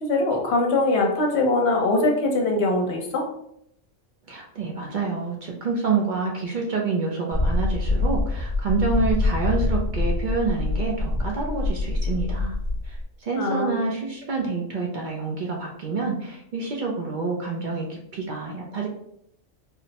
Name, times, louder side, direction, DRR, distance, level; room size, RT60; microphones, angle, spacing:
voice 1, 0.0-3.3 13.3-13.8, left 2 dB, 60° left, 1 dB, 1.0 m, -22 dB
voice 2, 4.3-12.6 12.8-18.9, right 4 dB, 60° right, -1 dB, 0.5 m, -27 dB
sound 1, 7.3-13.0, left 2 dB, 30° left, 0.9 m, -25 dB
4.1 x 2.0 x 2.8 m, 0.72 s
omnidirectional pair, 1.3 m